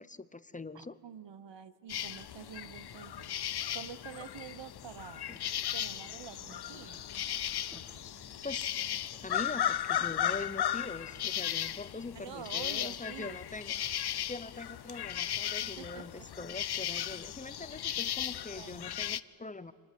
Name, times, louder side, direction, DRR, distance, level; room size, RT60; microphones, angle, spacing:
voice 1, 0.0-1.0 8.4-8.7 9.2-13.7 14.3-19.7, left 3 dB, 15° left, 15 dB, 0.8 m, -43 dB
voice 2, 0.7-3.3 3.7-5.3 5.7-7.1 12.1-13.4 15.6-16.5 18.3-18.9, right 8 dB, 60° right, 15 dB, 1.1 m, -48 dB
sound 1, 1.9-19.2, left 11 dB, 50° left, 0.6 m, -36 dB
sound 2, 2.4-12.4, left 1 dB, 80° right, 7.0 m, -61 dB
sound 3, 4.3-10.3, equal, 5° right, 2.1 m, -59 dB
25.0 x 20.5 x 7.7 m, 2.4 s
cardioid pair, 65°, 49 cm